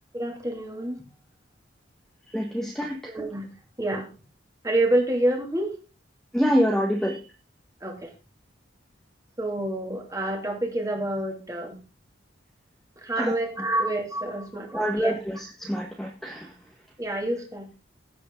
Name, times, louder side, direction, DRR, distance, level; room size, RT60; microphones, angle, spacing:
voice 1, 0.1-1.0 3.1-3.5 3.8-4.1 4.6-5.8 7.8-8.1 9.4-11.7 13.0-15.2 17.0-17.7, right 1 dB, 15° right, 3 dB, 2.7 m, -27 dB
voice 2, 2.3-3.0 6.3-7.2 13.2-13.3 14.7-16.5, equal, ahead, 0 dB, 1.5 m, -26 dB
16.0 x 8.3 x 3.8 m, 0.32 s
head